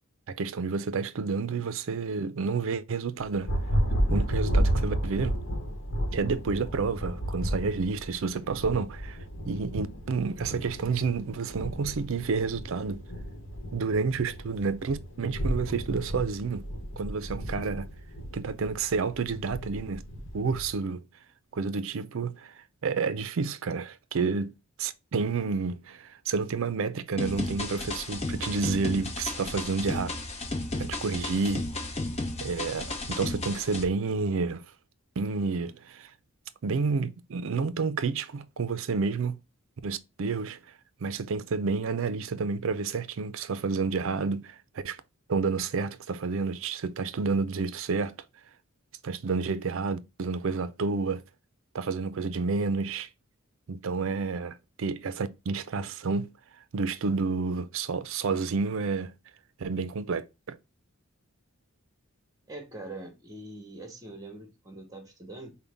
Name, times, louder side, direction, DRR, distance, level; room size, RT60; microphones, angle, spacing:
voice 1, 0.4-3.5 4.1-5.4 6.1-9.2 9.5-13.1 13.7-16.6 17.0-17.9 18.3-20.0 20.3-21.0 21.5-22.5 22.8-30.1 30.8-31.7 32.4-34.6 35.2-36.1 36.6-39.4 39.8-40.6 41.0-44.6 44.8-45.0 45.3-48.1 49.0-51.2 51.7-53.1 53.7-56.3 56.7-59.1 59.6-60.6, right 4 dB, 65° right, 0.5 m, -30 dB
Thunder, 3.2-20.7, equal, 60° left, 1.0 m, -32 dB
sound 1, 27.2-33.8, left 2 dB, 30° left, 0.8 m, -34 dB
voice 2, 62.5-65.5, right 2 dB, 15° right, 1.0 m, -43 dB
5.3 x 2.2 x 3.4 m
head